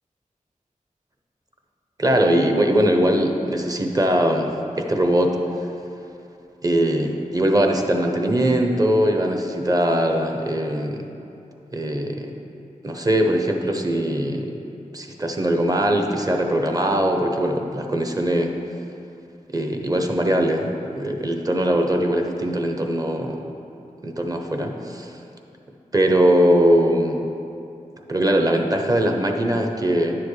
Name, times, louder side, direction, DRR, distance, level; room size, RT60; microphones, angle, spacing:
voice 1, 2.0-5.4 6.6-11.1 11.7-12.3 12.8-14.6 14.9-18.5 19.5-20.7 20.9-23.4 24.0-25.2 25.9-27.2 28.1-30.2, right 1 dB, 25° right, 3 dB, 0.8 m, -21 dB
10.0 x 7.0 x 3.2 m, 2.7 s
wide cardioid pair, 70°, 14 cm